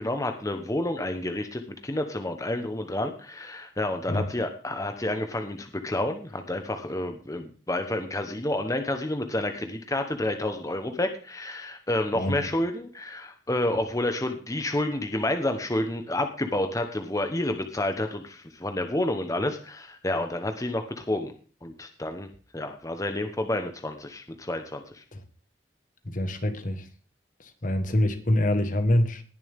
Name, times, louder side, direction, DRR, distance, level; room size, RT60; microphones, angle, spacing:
voice 1, 0.0-21.3 21.6-22.3 22.5-25.0, left 1 dB, 20° left, 1.1 m, -29 dB
voice 2, 12.1-12.5 25.1-25.2 26.0-26.9 27.4-29.2, left 1 dB, 50° left, 1.4 m, -25 dB
19.0 x 7.0 x 3.6 m
head